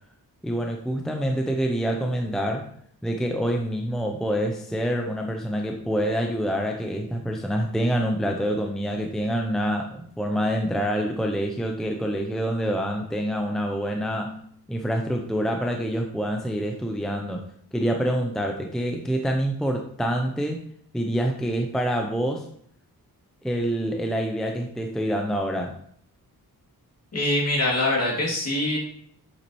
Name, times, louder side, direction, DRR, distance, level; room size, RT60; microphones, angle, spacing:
voice 1, 0.4-2.7 3.0-14.4 14.7-20.6 20.9-22.5 23.4-25.8, equal, ahead, 2 dB, 0.6 m, -26 dB
voice 2, 27.1-28.8, left 1 dB, 40° left, -3 dB, 2.5 m, -23 dB
8.2 x 7.1 x 3.1 m, 0.65 s
wide cardioid pair, 175°, 37 cm